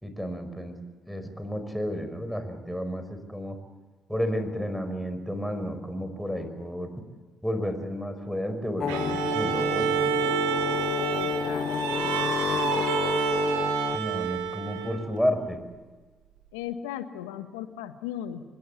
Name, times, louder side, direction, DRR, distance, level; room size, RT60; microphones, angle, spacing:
voice 1, 0.0-0.8 1.1-3.6 4.1-6.9 7.4-10.3 13.9-15.6, equal, ahead, 8 dB, 5.5 m, -31 dB
sound 1, 8.8-14.0, left 7 dB, 50° left, 0.9 m, -29 dB
Bowed string instrument, 8.9-15.2, right 10 dB, 80° right, 1.6 m, -29 dB
voice 2, 11.1-12.8 14.9-15.0 16.5-18.4, left 10 dB, 80° left, 10 dB, 1.4 m, -38 dB
25.5 x 21.0 x 8.2 m, 1.3 s
hypercardioid pair, 45°, 0 cm